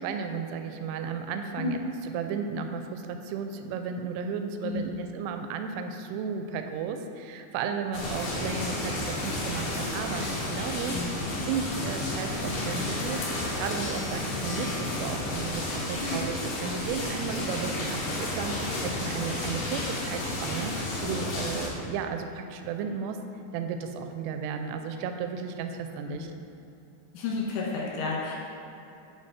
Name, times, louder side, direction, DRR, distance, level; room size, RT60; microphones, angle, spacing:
voice 1, 0.0-11.1 11.4-13.3 13.6-23.2 23.5-26.3, right 6 dB, 90° right, 6 dB, 3.0 m, -34 dB
sound 1, 7.9-21.7, left 2 dB, 60° left, 2.8 m, -32 dB
voice 2, 27.1-28.3, left 3 dB, 80° left, -4 dB, 3.8 m, -31 dB
9.9 x 5.4 x 4.1 m, 2.8 s
omnidirectional pair, 5.4 m